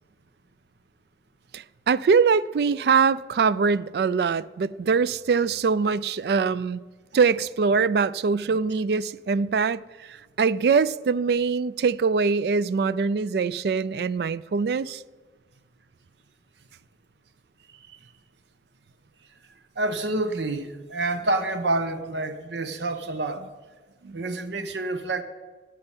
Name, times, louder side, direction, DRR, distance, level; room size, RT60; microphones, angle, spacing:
voice 1, 1.5-6.8 7.1-9.8 10.4-15.0 24.0-24.2, right 5 dB, 60° right, 0.3 m, -23 dB
voice 2, 17.7-18.1 19.8-23.5 24.1-25.2, right 2 dB, 80° right, 1.0 m, -28 dB
9.8 x 7.7 x 8.9 m
head